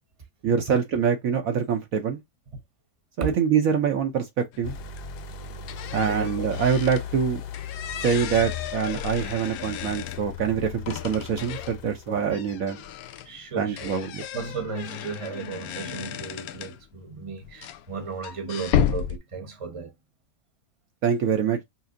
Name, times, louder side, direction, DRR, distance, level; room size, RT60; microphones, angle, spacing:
voice 1, 0.4-2.2 3.2-4.8 5.9-7.4 8.0-12.8 13.6-14.2 21.0-21.6, right 7 dB, 65° right, 1.0 m, -25 dB
sound 1, 4.5-4.7 5.0-7.1 7.5-10.4 10.9-11.8 12.3-16.9 17.4-19.2, left 9 dB, 70° left, 1.0 m, -33 dB
sound 2, 4.6-12.9, left 8 dB, 90° left, 1.2 m, -37 dB
voice 2, 5.9-6.5 12.1-12.3 13.2-13.9 14.3-19.9, right 5 dB, 25° right, 1.0 m, -34 dB
5.7 x 2.0 x 2.5 m
omnidirectional pair, 1.7 m